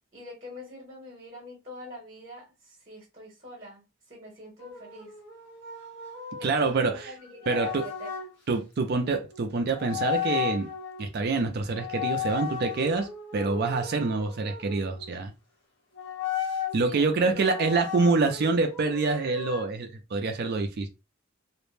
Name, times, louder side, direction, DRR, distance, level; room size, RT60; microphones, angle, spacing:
voice 1, 0.1-5.1 6.4-8.1 16.8-17.7, equal, 30° right, 1.0 m, -44 dB
sound 1, 4.6-8.3 9.3-9.5 9.8-11.1 11.7-15.1 16.0-16.8 17.4-19.7, left 9 dB, 55° left, 1.2 m, -35 dB
voice 2, 6.4-7.1 7.5-7.9 8.5-10.7 11.0-15.3 16.7-20.9, right 3 dB, 45° right, 0.4 m, -26 dB
2.5 x 2.1 x 3.1 m
head